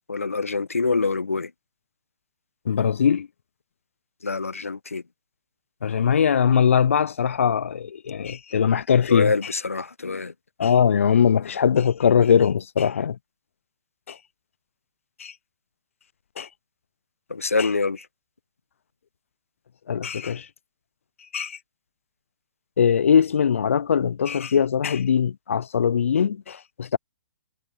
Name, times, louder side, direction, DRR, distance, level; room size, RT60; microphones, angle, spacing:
voice 1, 0.1-1.5 4.2-5.0 9.1-10.3 17.3-18.1, left 4 dB, 90° left, 1.3 m, -25 dB
voice 2, 2.7-3.3 5.8-9.3 10.6-13.2 14.1-14.2 15.2-15.3 16.4-16.5 17.6-17.7 19.9-20.5 21.3-21.6 22.8-27.0, left 7 dB, 70° left, 0.5 m, -21 dB
hypercardioid pair, 125°, 7 cm